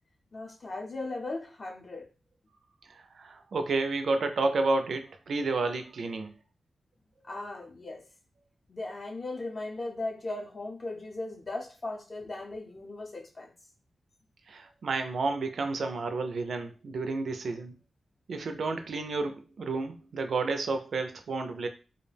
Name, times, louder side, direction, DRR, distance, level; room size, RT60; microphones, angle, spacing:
voice 1, 0.3-2.1 7.2-8.0 8.7-13.5, left 2 dB, 40° left, 0.5 m, -37 dB
voice 2, 3.2-6.3 14.5-17.7 18.3-21.7, right 3 dB, 65° right, 0.3 m, -31 dB
2.3 x 2.1 x 3.2 m
wide cardioid pair, 130°, 0 cm